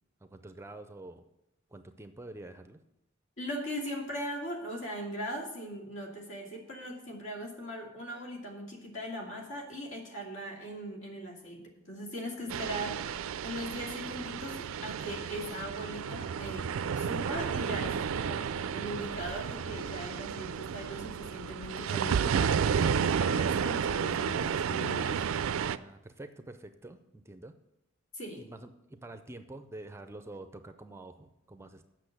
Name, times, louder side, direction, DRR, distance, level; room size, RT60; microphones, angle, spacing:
voice 1, 0.2-1.2 1.7-2.8 25.8-27.5 28.4-31.9, right 2 dB, 15° right, 9 dB, 0.5 m, -47 dB
voice 2, 3.4-13.1 13.4-16.7 17.0-18.4 18.7-25.2 28.1-28.4, equal, 65° left, 0 dB, 2.6 m, -39 dB
sound 1, 12.5-25.8, right 7 dB, 90° right, 0.4 m, -32 dB
8.4 x 6.2 x 7.8 m, 0.86 s
head